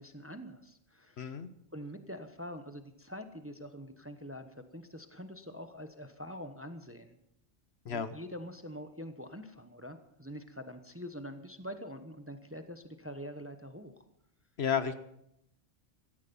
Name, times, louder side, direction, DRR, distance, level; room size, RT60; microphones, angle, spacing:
voice 1, 0.0-1.3 1.7-7.2 7.8-14.0, equal, 10° right, 8 dB, 0.9 m, -45 dB
voice 2, 1.2-1.5 7.9-8.2 14.6-14.9, left 7 dB, 60° left, 11 dB, 1.1 m, -32 dB
17.0 x 13.5 x 5.4 m, 0.78 s
omnidirectional pair, 1.3 m